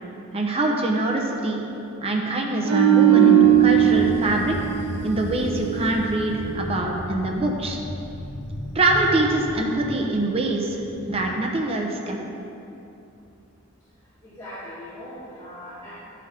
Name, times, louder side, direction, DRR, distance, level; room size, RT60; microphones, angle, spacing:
voice 1, 0.3-1.6 2.0-4.6 5.0-7.8 8.7-10.8 11.1-12.3, right 2 dB, 30° right, 0 dB, 0.8 m, -24 dB
sound 1, 2.6-5.9 6.2-6.5, right 10 dB, 75° right, 0.7 m, -18 dB
sound 2, 3.4-11.3, left 1 dB, 55° left, 0.7 m, -35 dB
voice 2, 14.2-15.9, left 1 dB, 15° left, -12 dB, 2.1 m, -39 dB
11.0 x 5.9 x 5.0 m, 2.8 s
head